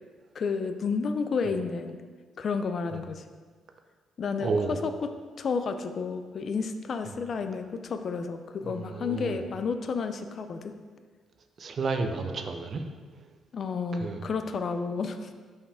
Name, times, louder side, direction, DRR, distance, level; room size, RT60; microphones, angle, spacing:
voice 1, 0.3-2.0 2.4-3.2 4.2-5.1 5.4-10.7 13.5-15.3, left 5 dB, 50° left, 8 dB, 0.5 m, -31 dB
voice 2, 4.4-4.8 8.6-9.4 11.6-12.8 14.0-14.2, right 4 dB, 50° right, 6 dB, 0.7 m, -31 dB
5.7 x 5.4 x 4.9 m, 1.5 s
cardioid pair, 90°, 0 cm